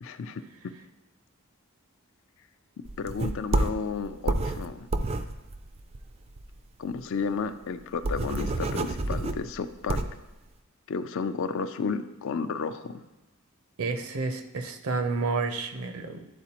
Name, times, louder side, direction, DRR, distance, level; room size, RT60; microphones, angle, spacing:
voice 1, 0.0-0.7 3.0-4.9 6.8-10.0 10.9-13.0, left 5 dB, 65° left, 10 dB, 0.4 m, -32 dB
sound 1, 2.9-6.6 6.9-7.0 7.3-7.4 7.7-10.2, right 2 dB, 30° right, 0.3 m, -29 dB
voice 2, 13.8-16.3, right 4 dB, 75° right, 7 dB, 0.6 m, -30 dB
11.0 x 4.1 x 2.9 m, 1.1 s
head